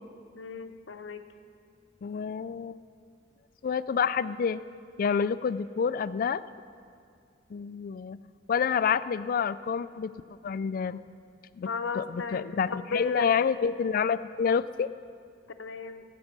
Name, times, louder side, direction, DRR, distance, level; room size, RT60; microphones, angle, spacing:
voice 1, 0.3-1.2 11.6-13.3 15.5-16.0, left 4 dB, 75° left, 8 dB, 0.7 m, -35 dB
voice 2, 2.0-2.8 3.6-4.6 5.0-6.4 7.5-8.2 8.5-10.1 10.4-11.0 11.6-11.7 12.0-14.9, left 6 dB, 50° left, 15 dB, 0.3 m, -28 dB
17.5 x 8.4 x 6.1 m, 2.3 s
head